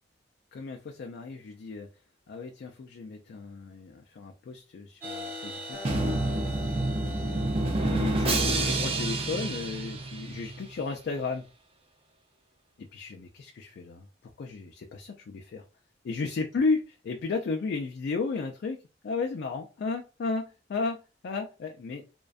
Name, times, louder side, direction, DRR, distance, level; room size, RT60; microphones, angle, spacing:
voice 1, 0.5-1.9 2.3-11.5 12.9-15.6 16.0-22.0, left 4 dB, 60° left, 0.3 m, -34 dB
sound 1, 5.0-10.6, equal, 10° right, 0.8 m, -43 dB
Acoustic guitar, 5.7-9.1, left 3 dB, 85° left, 0.8 m, -48 dB
Drum, 5.9-10.7, right 2 dB, 30° right, 0.4 m, -28 dB
2.5 x 2.1 x 2.3 m
head